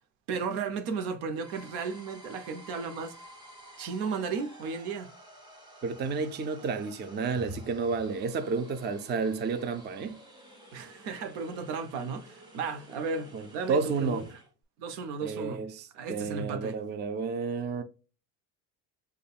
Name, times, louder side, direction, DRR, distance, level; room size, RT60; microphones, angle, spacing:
voice 1, 0.3-3.1 3.8-5.1 10.7-14.4 14.8-15.7 15.9-16.8, right 5 dB, 75° right, 0.8 m, -34 dB
sound 1, 1.3-14.5, right 1 dB, 10° right, 1.2 m, -52 dB
voice 2, 5.8-10.2 13.3-14.3 15.2-17.8, right 4 dB, 25° right, 0.4 m, -31 dB
5.2 x 2.2 x 2.3 m
supercardioid pair, 85°, 43 cm